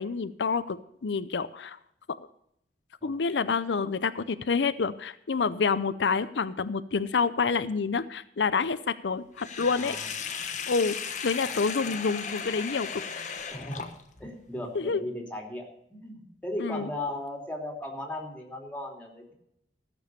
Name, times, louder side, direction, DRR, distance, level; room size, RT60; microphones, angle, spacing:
voice 1, 0.0-1.8 3.0-10.0 10.7-13.0 14.7-15.0 16.6-16.9, left 5 dB, 85° left, 13 dB, 0.6 m, -28 dB
Sink (filling or washing), 9.4-14.3, left 6 dB, 45° left, 1.2 m, -36 dB
voice 2, 9.6-10.5 11.4-12.0 13.5-13.9 14.2-19.3, left 1 dB, 10° left, 0 dB, 3.0 m, -37 dB
15.0 x 7.0 x 6.8 m, 0.74 s
head